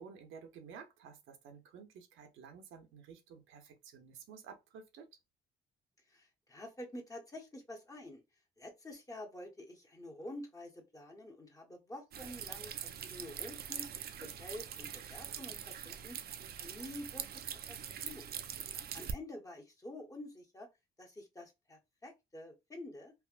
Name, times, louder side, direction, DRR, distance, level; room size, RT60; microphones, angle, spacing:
voice 1, 0.0-5.0, right 6 dB, 85° right, 0.8 m, -53 dB
voice 2, 6.1-8.2 8.6-13.9 14.2-16.2 16.6-18.2 18.9-20.7 21.0-23.1, left 1 dB, 15° left, 0.9 m, -48 dB
sound 1, 12.1-19.1, right 9 dB, 50° right, 0.4 m, -43 dB
3.3 x 2.1 x 2.5 m
cardioid pair, 90°, 20 cm